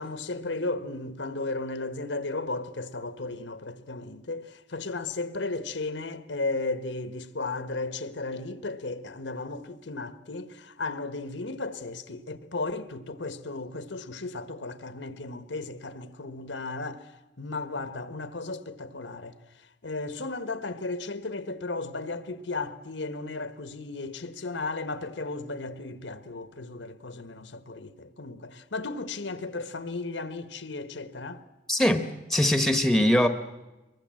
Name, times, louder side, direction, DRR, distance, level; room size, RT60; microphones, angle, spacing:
voice 1, 0.0-17.0 17.4-19.3 19.8-31.4, left 3 dB, 80° left, 1.3 m, -35 dB
voice 2, 31.7-33.3, left 1 dB, ahead, 1.1 m, -22 dB
23.0 x 22.0 x 7.7 m
head